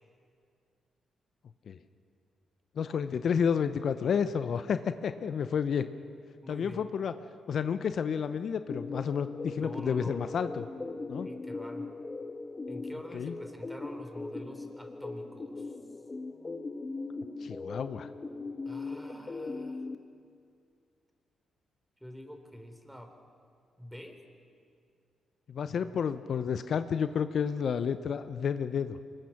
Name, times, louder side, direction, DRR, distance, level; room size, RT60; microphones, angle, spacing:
voice 1, 2.8-5.8 6.5-7.1 7.5-10.6 11.1-11.3 13.1-13.3 17.4-18.1 25.5-29.0, left 7 dB, 65° left, 11 dB, 0.7 m, -30 dB
voice 2, 6.4-6.9 9.6-10.2 11.2-11.9 12.7-15.8 18.7-19.8 22.0-23.1 23.8-24.2 25.8-26.0, equal, 5° right, 6 dB, 3.6 m, -46 dB
sound 1, 8.7-20.0, left 3 dB, 35° left, 1.4 m, -39 dB
24.5 x 21.5 x 5.9 m, 2.3 s
hypercardioid pair, 45°, 0 cm